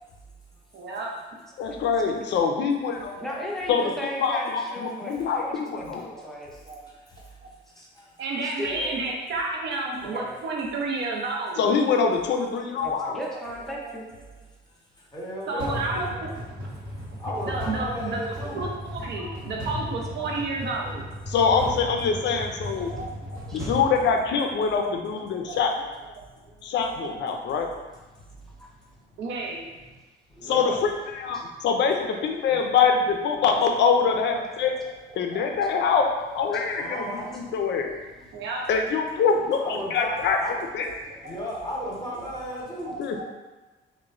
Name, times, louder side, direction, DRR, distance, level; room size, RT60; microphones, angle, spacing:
voice 1, 0.7-1.1 3.3-3.4 4.8-5.5 5.8-6.3 6.7-6.9 7.4-7.5 8.2-11.6 13.8-14.0 15.5-16.4 17.5-18.2 18.6-18.7 19.0-21.1 22.8-23.8 25.1-25.6 26.2-26.3 26.5-26.6 27.0-27.2 29.2-29.6 35.3-35.9 36.7-36.8 37.2-37.3 37.7-38.0 38.3-38.7 41.1-41.4 42.9-43.2, right 3 dB, 65° right, -1 dB, 0.6 m, -32 dB
voice 2, 1.6-3.2 3.7-6.1 11.6-13.2 21.3-22.9 23.5-25.7 26.6-27.7 30.5-34.7 35.2-36.1 36.3-37.0 37.3-37.9 38.7-40.4 40.7-40.9 43.0-43.2, left 5 dB, 65° left, 4 dB, 0.4 m, -24 dB
voice 3, 3.2-6.6 7.8-8.1 8.4-9.0 10.1-10.4 12.8-14.1 19.2-19.3 20.2-20.3 22.7-22.9 23.5-23.7 28.6-28.7 31.3-31.4 36.5-36.6, equal, ahead, -4 dB, 0.6 m, -36 dB
voice 4, 15.1-15.8 17.2-18.6 30.4-30.8 32.4-32.6 36.7-37.3 39.6-40.5 41.2-43.0, equal, 20° left, -5 dB, 0.9 m, -34 dB
sound 1, 15.6-24.8, equal, 90° right, 1.0 m, -36 dB
3.0 x 2.1 x 2.4 m, 1.2 s
cardioid pair, 90°, 20 cm